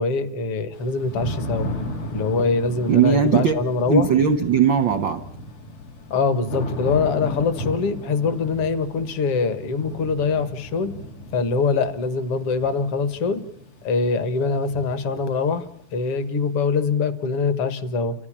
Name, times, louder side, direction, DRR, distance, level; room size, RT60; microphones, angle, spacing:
voice 1, 0.0-1.7 2.1-4.1 6.1-10.9 11.3-13.4 13.8-15.7 15.9-18.1, left 4 dB, 55° left, 12 dB, 2.1 m, -23 dB
Thunder / Rain, 0.7-16.5, equal, 85° left, 4.6 m, -35 dB
voice 2, 2.9-3.5 3.9-5.2, right 7 dB, 70° right, 7 dB, 1.1 m, -18 dB
29.5 x 13.5 x 8.7 m, 0.72 s
omnidirectional pair, 3.6 m